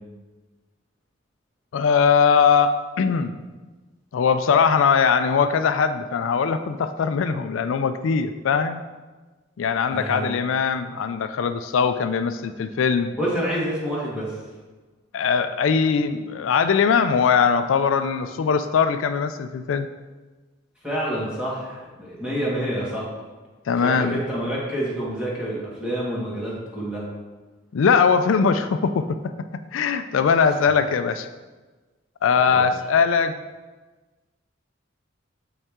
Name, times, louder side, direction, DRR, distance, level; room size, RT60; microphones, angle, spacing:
voice 1, 1.7-3.3 4.1-8.8 9.6-13.1 15.1-19.9 23.7-24.2 27.7-31.3 32.2-33.3, left 6 dB, 80° left, 10 dB, 0.4 m, -21 dB
voice 2, 9.9-10.3 13.2-14.4 20.8-23.1 23.8-27.0 32.5-32.7, equal, 5° right, -7 dB, 1.9 m, -28 dB
7.3 x 5.4 x 3.6 m, 1.3 s
head